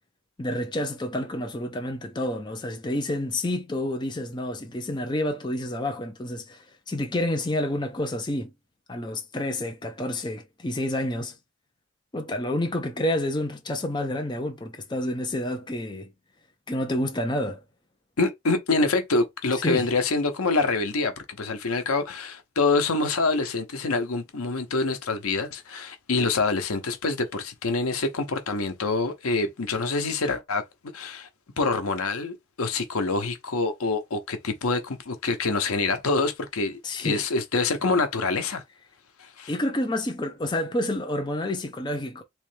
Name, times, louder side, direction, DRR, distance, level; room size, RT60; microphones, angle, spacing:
voice 1, 0.4-8.5 8.9-11.3 12.1-16.1 16.7-17.6 19.6-19.9 36.8-37.3 39.5-42.2, left 1 dB, 20° left, 0.5 m, -29 dB
voice 2, 18.2-30.6 30.9-31.3 31.6-38.6 39.2-39.5, left 3 dB, 90° left, 0.8 m, -26 dB
3.1 x 3.1 x 3.2 m
head